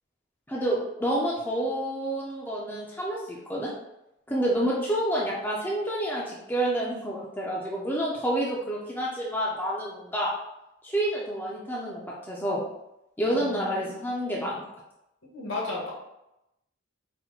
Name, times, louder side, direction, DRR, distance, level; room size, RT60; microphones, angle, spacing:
voice 1, 0.5-3.7 4.3-10.3 10.8-12.6 13.2-14.6, right 1 dB, 10° left, -5 dB, 0.4 m, -29 dB
voice 2, 13.3-13.9 14.3-14.6 15.3-15.9, left 2 dB, 65° left, -3 dB, 1.2 m, -35 dB
4.3 x 2.1 x 3.9 m, 0.87 s
head